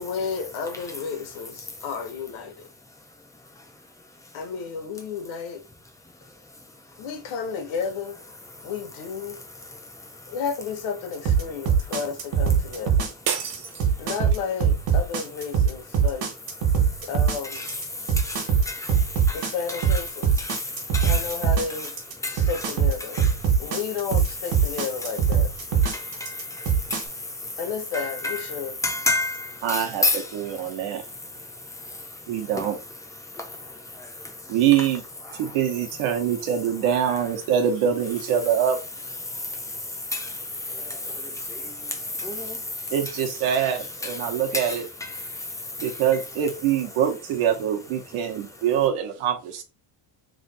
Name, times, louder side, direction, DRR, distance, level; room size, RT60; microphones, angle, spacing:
voice 1, 0.0-2.7 4.3-5.6 7.0-8.2 8.6-9.4 10.3-13.2 14.0-16.3 17.1-17.7 19.3-20.4 21.0-21.9 22.3-23.2 23.6-25.5 27.6-28.7, left 6 dB, 80° left, 1.1 m, -32 dB
voice 2, 0.7-1.2 1.6-1.8 2.8-4.5 5.9-7.1 8.5-8.7 9.2-10.4 11.4-12.0 12.6-14.1 15.8-16.1 16.6-17.1 17.4-23.8 24.4-34.9 35.2-37.5 38.0-48.9, left 2 dB, 10° left, 0.3 m, -34 dB
sound 1, 11.3-27.0, right 7 dB, 60° right, 1.2 m, -21 dB
sound 2, 13.3-14.5, right 7 dB, 40° right, 0.7 m, -31 dB
voice 3, 29.6-30.0 30.3-31.0 32.3-32.8 34.5-35.0 35.4-38.8 42.9-44.8 45.8-49.6, right 9 dB, 90° right, 1.1 m, -24 dB
3.3 x 2.6 x 4.0 m
cardioid pair, 180°, 48 cm